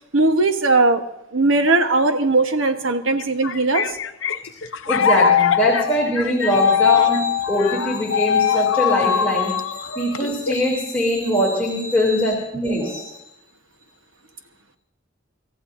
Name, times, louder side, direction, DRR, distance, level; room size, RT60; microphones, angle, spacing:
voice 1, 0.1-1.0 1.3-3.8, right 3 dB, 85° right, 6 dB, 1.2 m, -18 dB
sound 1, 3.2-10.7, left 8 dB, 75° left, 0.6 m, -21 dB
voice 2, 4.9-13.1, left 1 dB, 10° left, -6 dB, 3.0 m, -22 dB
27.0 x 14.0 x 2.7 m, 0.82 s
head